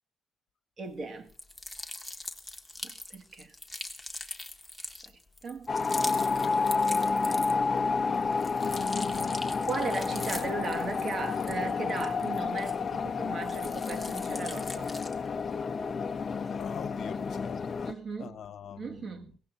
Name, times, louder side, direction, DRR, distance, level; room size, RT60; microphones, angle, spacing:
voice 1, 0.8-1.3 2.8-3.5 5.4-5.7 9.7-15.0 17.9-18.4 18.8-19.4, right 4 dB, 45° right, 2.0 m, -37 dB
sound 1, 1.3-7.8 8.1-13.0 13.4-15.3, left 1 dB, ahead, 1.8 m, -42 dB
sound 2, 5.7-17.9, left 4 dB, 40° left, 0.8 m, -30 dB
voice 2, 8.6-9.5 16.6-17.9 18.2-19.3, left 8 dB, 65° left, 1.2 m, -44 dB
22.0 x 18.0 x 2.7 m
cardioid pair, 90°, 0 cm